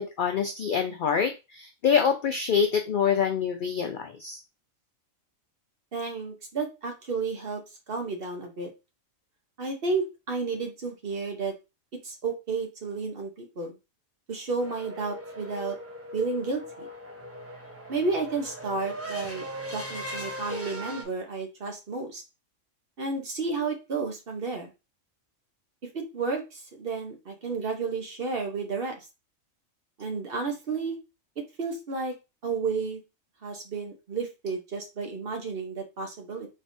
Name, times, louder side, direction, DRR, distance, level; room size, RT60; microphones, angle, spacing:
voice 1, 0.0-4.4, left 7 dB, 70° left, 5 dB, 0.4 m, -26 dB
voice 2, 5.9-7.6 7.9-8.7 9.6-11.5 11.9-13.8 14.3-15.8 16.1-16.9 17.9-19.4 19.7-22.2 23.0-24.7 25.9-29.0 30.0-31.0 31.4-32.1 32.4-33.0 33.4-36.5, right 4 dB, 50° right, 3 dB, 1.0 m, -32 dB
sound 1, 14.6-21.0, equal, 15° right, 0.7 m, -38 dB
4.2 x 3.3 x 2.6 m, 0.27 s
omnidirectional pair, 1.4 m